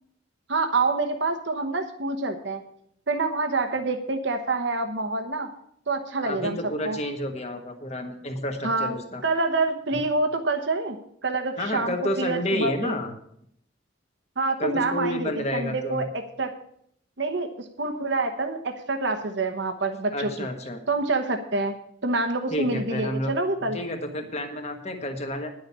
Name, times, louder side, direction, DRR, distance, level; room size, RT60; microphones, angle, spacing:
voice 1, 0.5-2.6 3.1-5.5 5.9-6.6 6.8-7.0 8.6-8.9 9.2-11.0 11.2-13.0 14.4-16.5 17.2-20.5 20.9-21.7 22.0-23.8, right 3 dB, 65° right, 5 dB, 1.1 m, -27 dB
voice 2, 6.2-9.2 9.9-10.0 11.6-13.1 14.6-16.0 20.1-20.8 22.5-23.3 23.6-25.5, left 1 dB, 35° left, 5 dB, 1.5 m, -30 dB
10.5 x 6.5 x 8.6 m, 0.70 s
head